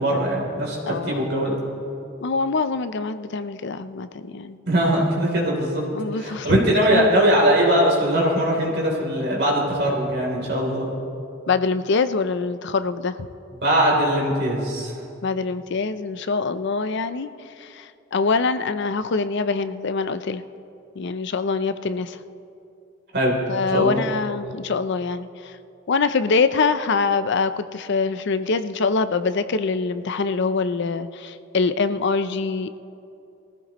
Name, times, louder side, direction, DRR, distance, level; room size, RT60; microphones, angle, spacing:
voice 1, 0.0-1.6 4.7-5.8 6.1-10.9 13.6-14.9 23.1-23.4 23.7-24.0, right 1 dB, 55° right, -2 dB, 3.4 m, -21 dB
voice 2, 0.9-1.3 2.2-4.6 5.9-7.2 11.5-13.1 15.2-17.3 17.6-20.4 21.0-22.2 23.5-25.5 25.9-32.7, left 4 dB, 60° left, 12 dB, 0.5 m, -24 dB
20.5 x 15.0 x 3.0 m, 2.6 s
head